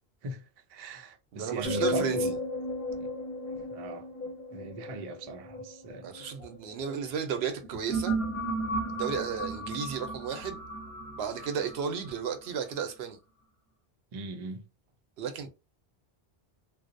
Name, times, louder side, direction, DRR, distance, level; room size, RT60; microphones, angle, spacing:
voice 1, 0.7-2.3 3.0-3.1 3.7-4.1 4.5-6.1 14.1-14.6, right 3 dB, 50° right, 0.4 m, -39 dB
voice 2, 1.3-2.3 6.0-8.1 8.9-10.6 11.2-13.2 15.2-15.5, right 7 dB, 90° right, 0.8 m, -33 dB
sound 1, 1.6-6.9 7.5-12.5, equal, 5° left, 1.0 m, -34 dB
2.6 x 2.0 x 2.5 m
omnidirectional pair, 1.0 m